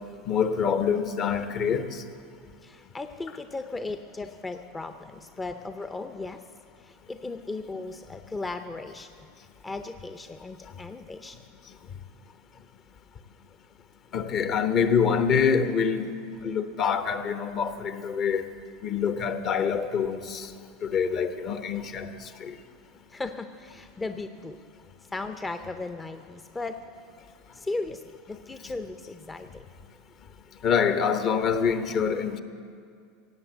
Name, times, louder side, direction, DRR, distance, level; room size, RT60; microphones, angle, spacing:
voice 1, 0.3-2.0 14.1-16.0 16.4-18.4 18.8-20.5 20.8-22.1 22.4-22.5 30.6-32.4, left 6 dB, 45° left, 1.0 m, -25 dB
voice 2, 2.6-6.4 6.8-9.1 9.6-11.4 23.1-24.6 25.1-26.8 27.5-29.6, left 3 dB, 15° left, 0.6 m, -36 dB
17.0 x 7.9 x 7.9 m
hypercardioid pair, 90°, 0 cm